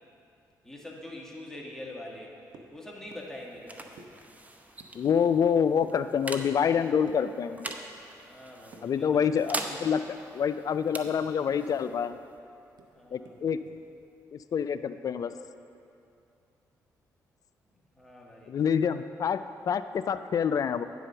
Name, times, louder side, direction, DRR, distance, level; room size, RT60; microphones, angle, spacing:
voice 1, 0.6-2.4 2.7-4.2 8.3-9.3 12.9-13.5 17.7-18.5, left 1 dB, 5° left, -3 dB, 1.8 m, -44 dB
sound 1, 2.5-2.8 3.1-3.3 3.5-3.7 4.0-4.1 4.8-5.4 5.8-6.0 6.4-6.7 7.1-7.2 7.7-7.8 8.1-8.3 8.7-8.8 9.2-9.4 9.8-10.1 10.5-12.0 12.3-12.4 12.8-13.7, right 4 dB, 70° right, 0.8 m, -50 dB
sound 2, 2.9-14.2, right 2 dB, 20° right, 0.8 m, -43 dB
voice 2, 4.9-7.7 8.8-10.0 10.3-12.2 13.1-13.6 14.3-15.3 18.5-19.4 19.7-20.8, left 7 dB, 55° left, 12 dB, 0.3 m, -27 dB
9.7 x 5.0 x 6.7 m, 2.7 s
supercardioid pair, 65°, 7 cm